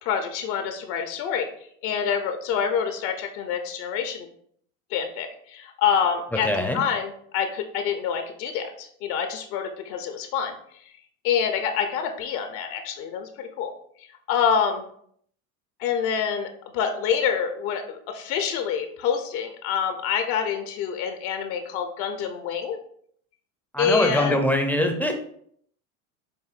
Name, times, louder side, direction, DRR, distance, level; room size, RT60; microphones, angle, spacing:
voice 1, 0.0-1.5 1.8-4.3 4.9-10.6 11.2-13.7 14.3-14.8 15.8-22.8 23.8-24.4, left 7 dB, 65° left, 6 dB, 0.7 m, -26 dB
voice 2, 6.4-6.8 23.7-25.1, left 1 dB, 5° left, 4 dB, 0.5 m, -23 dB
7.4 x 2.6 x 2.4 m, 0.64 s
supercardioid pair, 100°, 41 cm